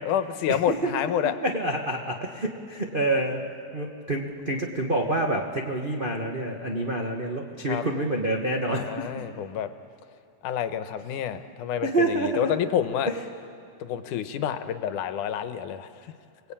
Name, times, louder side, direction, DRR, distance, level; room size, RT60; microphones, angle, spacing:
voice 1, 0.0-1.3 7.7-7.8 8.8-9.7 10.4-13.1 13.8-15.9, left 9 dB, 85° left, 10 dB, 2.5 m, -28 dB
voice 2, 1.4-3.4 3.7-9.0 11.8-12.5, right 2 dB, 85° right, 0 dB, 0.4 m, -27 dB
29.0 x 20.0 x 8.7 m, 2.4 s
omnidirectional pair, 3.6 m